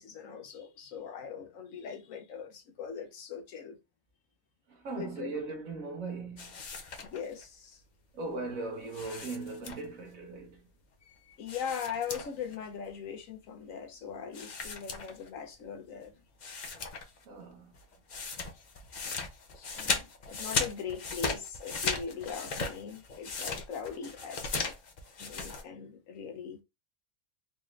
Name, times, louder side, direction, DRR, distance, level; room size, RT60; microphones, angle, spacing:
voice 1, 0.0-3.8 5.0-5.3 7.0-7.8 11.1-16.1 19.5-24.7 25.2-26.6, left 7 dB, 70° left, 1.1 m, -40 dB
voice 2, 4.7-6.5 8.1-10.6 17.3-17.7, right 3 dB, 75° right, 1.5 m, -39 dB
sound 1, 6.4-7.4 8.9-10.1 11.5-12.6 12.8-12.9 14.3-15.5 16.0-16.1 16.4-17.2 17.5-25.6, left 4 dB, 45° left, 0.6 m, -37 dB
4.1 x 2.5 x 3.1 m
omnidirectional pair, 1.4 m